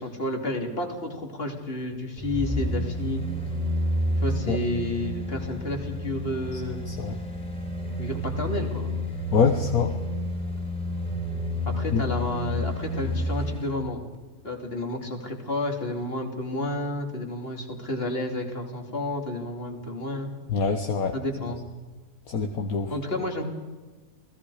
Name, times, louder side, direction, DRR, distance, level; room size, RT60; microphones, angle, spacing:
voice 1, 0.0-3.2 4.2-6.8 8.0-8.8 11.6-14.0 14.4-20.3 21.1-21.6 22.9-23.4, left 1 dB, 35° left, 3 dB, 3.2 m, -31 dB
sound 1, 2.2-13.8 14.1-14.2, equal, 5° left, 3.1 m, -30 dB
voice 2, 9.3-9.9 11.9-12.0 20.5-21.1 22.3-22.9, left 5 dB, 65° left, 5 dB, 1.7 m, -24 dB
29.0 x 19.0 x 5.0 m, 1.3 s
omnidirectional pair, 1.7 m